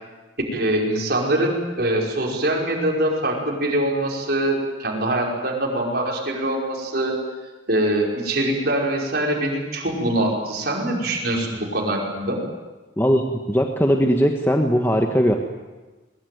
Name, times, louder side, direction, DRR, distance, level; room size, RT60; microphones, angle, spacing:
voice 1, 0.5-7.1 7.7-12.4, right 1 dB, 50° right, -2 dB, 5.4 m, -23 dB
voice 2, 13.0-15.3, equal, 10° left, 2 dB, 1.3 m, -19 dB
22.0 x 21.5 x 9.4 m, 1.2 s
head